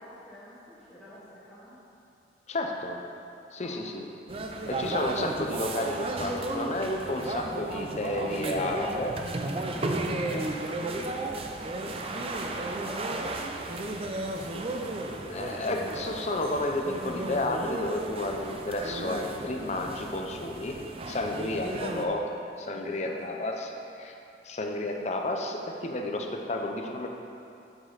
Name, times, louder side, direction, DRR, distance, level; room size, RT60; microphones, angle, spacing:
voice 1, 0.0-1.8 3.6-3.8 9.5-15.5 22.7-23.8, equal, ahead, -12 dB, 1.1 m, -49 dB
voice 2, 2.5-3.0 3.5-4.0 4.7-9.2 10.3-10.4 15.1-20.8 21.1-22.3 22.6-23.7 24.0-24.1 24.4-27.1, left 1 dB, 40° left, 2 dB, 0.6 m, -31 dB
sound 1, 4.3-22.0, right 2 dB, 30° right, 0.4 m, -34 dB
7.9 x 6.1 x 4.0 m, 2.6 s
head